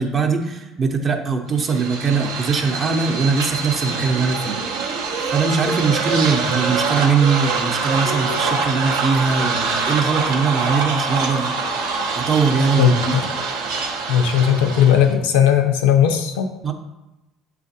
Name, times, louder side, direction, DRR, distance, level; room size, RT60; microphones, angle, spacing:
voice 1, 0.0-4.6 5.3-11.6 12.2-12.9 16.6-16.7, right 5 dB, 40° right, 4 dB, 0.6 m, -21 dB
sound 1, 1.6-15.1, right 4 dB, 80° right, 0.6 m, -24 dB
voice 2, 12.8-13.2 14.1-16.5, left 9 dB, 80° left, 5 dB, 0.4 m, -16 dB
7.2 x 2.5 x 2.7 m, 0.98 s
hypercardioid pair, 70°, 0 cm